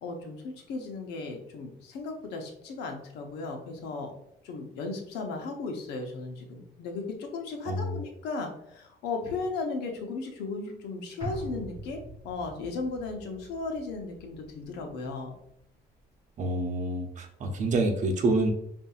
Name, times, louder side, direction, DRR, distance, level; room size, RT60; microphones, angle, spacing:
voice 1, 0.0-4.1 4.4-15.3, left 3 dB, 85° left, 3 dB, 0.9 m, -36 dB
voice 2, 7.7-8.0 16.4-18.5, right 2 dB, 45° right, 4 dB, 0.7 m, -27 dB
sound 1, 11.2-15.7 16.0-16.1, right 2 dB, 20° right, 1.2 m, -43 dB
5.3 x 2.7 x 2.4 m, 0.75 s
cardioid pair, 110°, 17 cm